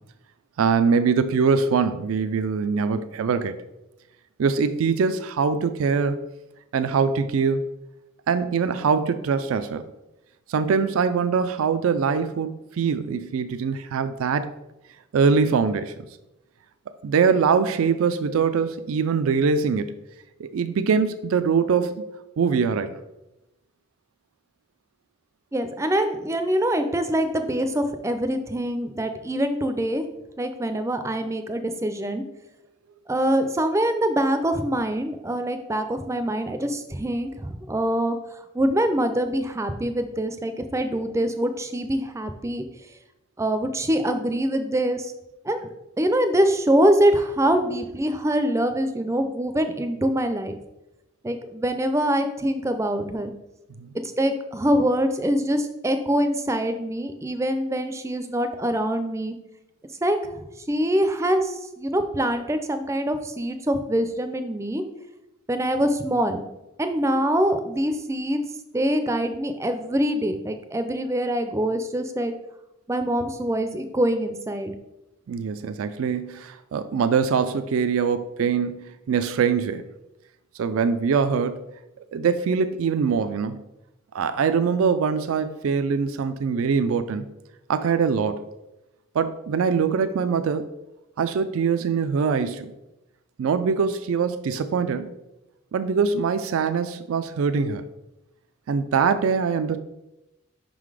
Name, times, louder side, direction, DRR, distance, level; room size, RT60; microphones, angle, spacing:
voice 1, 0.6-3.5 4.4-6.2 6.7-7.6 8.3-9.8 10.5-12.5 12.8-14.5 15.1-15.9 17.0-20.0 20.4-22.0 22.4-23.0 53.8-53.9 75.3-79.8 80.6-81.6 82.1-83.6 84.1-87.3 87.7-88.4 89.1-90.7 91.2-92.7 93.4-95.1 95.7-97.9 98.7-99.8, right 5 dB, 80° right, 11 dB, 0.4 m, -23 dB
voice 2, 25.5-30.0 30.4-32.2 33.1-42.6 43.4-45.1 45.4-45.7 46.0-50.5 51.2-53.3 53.9-59.4 60.0-64.8 65.5-66.4 66.8-68.4 68.7-72.3 72.9-74.8, right 1 dB, 15° right, 8 dB, 0.4 m, -24 dB
5.6 x 3.8 x 4.8 m, 0.94 s
head